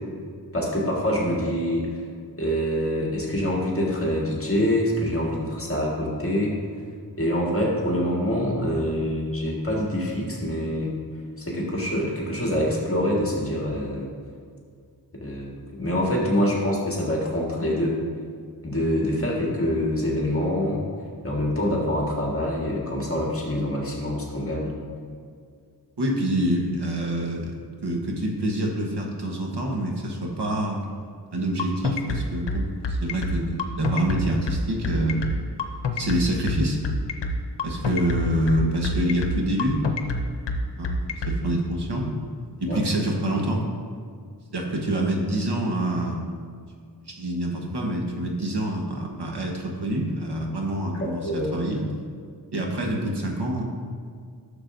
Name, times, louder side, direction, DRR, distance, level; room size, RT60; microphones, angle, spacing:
voice 1, 0.5-2.0 2.4-6.6 7.2-10.9 11.4-14.1 15.2-18.0 18.6-20.8 21.2-24.7 42.7-42.8 50.9-51.5, equal, 30° left, -3 dB, 1.7 m, -25 dB
voice 2, 26.0-27.5 27.8-30.8 31.3-35.2 35.9-36.8 37.6-39.8 40.8-42.1 42.6-43.6 44.5-46.2 47.1-51.9 52.5-53.6, right 1 dB, 70° right, 0 dB, 1.4 m, -26 dB
sound 1, 31.6-41.4, left 2 dB, 85° left, 0.8 m, -27 dB
11.5 x 6.9 x 2.6 m, 2.1 s
wide cardioid pair, 65°, 41 cm